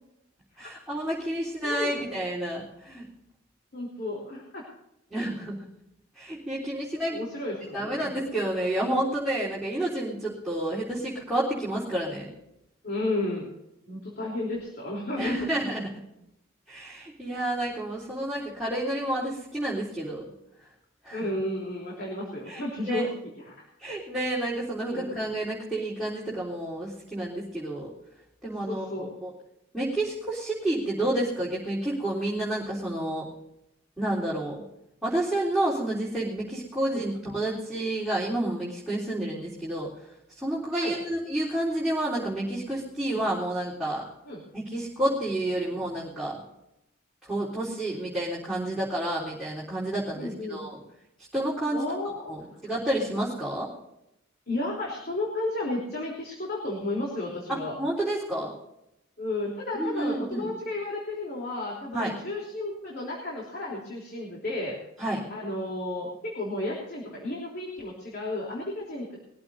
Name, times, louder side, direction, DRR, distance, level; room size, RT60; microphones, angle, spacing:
voice 1, 0.6-3.0 5.1-5.6 6.2-7.2 7.7-12.3 15.2-15.9 16.7-20.2 21.0-21.3 22.5-23.1 23.8-27.9 28.4-29.3 29.7-33.3 34.0-34.6 35.0-39.9 40.4-44.0 44.5-46.4 47.2-50.8 51.3-51.9 52.3-53.7 57.5-58.5 59.7-60.5 61.9-62.1 65.0-65.2, right 1 dB, ahead, -9 dB, 3.6 m, -30 dB
voice 2, 1.6-2.1 3.7-4.6 7.1-8.2 12.8-13.5 13.9-15.5 21.1-23.1 23.4-23.5 24.9-25.2 28.7-29.1 36.9-37.0 40.8-41.0 43.1-43.2 44.2-44.4 50.1-50.6 51.7-52.6 54.5-57.7 59.2-64.8 65.3-69.1, left 2 dB, 50° left, -3 dB, 3.5 m, -33 dB
22.0 x 14.5 x 2.7 m, 0.86 s
head